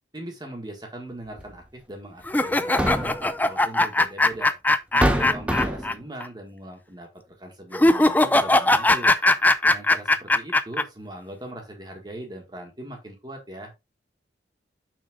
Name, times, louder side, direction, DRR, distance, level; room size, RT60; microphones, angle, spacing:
voice 1, 0.1-4.5 4.9-9.1 9.6-13.7, right 1 dB, 20° right, 1 dB, 1.7 m, -40 dB
sound 1, 1.4-1.5 2.5-3.3 4.3-4.4 5.0-6.0, equal, 5° right, 0.8 m, -24 dB
sound 2, 2.3-5.9 6.2-6.3 7.7-10.8, left 2 dB, 10° left, 0.4 m, -20 dB
6.2 x 6.0 x 3.6 m, 0.23 s
head